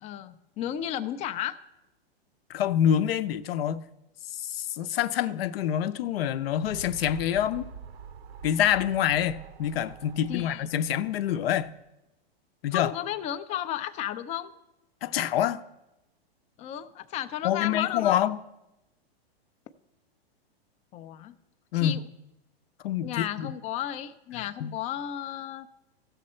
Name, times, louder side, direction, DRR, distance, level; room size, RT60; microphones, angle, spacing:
voice 1, 0.0-1.6 10.3-10.7 12.7-14.5 16.6-18.2 20.9-21.3 21.7-22.0 23.0-25.7, left 11 dB, 25° left, 0.4 m, -33 dB
voice 2, 2.5-3.8 4.3-7.7 8.4-11.7 12.6-12.9 15.0-15.6 17.4-18.4 21.7-22.0 22.8-23.5 24.6-24.7, left 10 dB, 70° left, 0.7 m, -26 dB
sound 1, 6.1-11.7, right 7 dB, 85° right, 0.8 m, -45 dB
15.5 x 6.6 x 4.3 m
hypercardioid pair, 135°, 31 cm